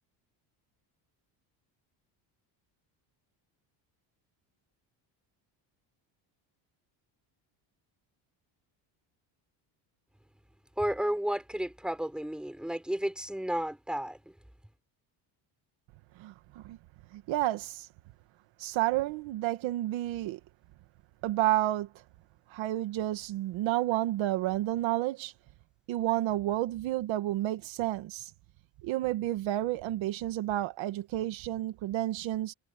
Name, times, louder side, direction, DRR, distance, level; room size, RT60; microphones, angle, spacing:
voice 1, 10.8-14.2, right 1 dB, ahead, 4.8 m, -32 dB
voice 2, 16.2-16.8 17.1-17.9 18.6-20.4 21.2-21.9 22.5-25.3 25.9-28.3 28.8-32.5, right 15 dB, 70° right, 1.7 m, -30 dB
cardioid pair, 165°, 48 cm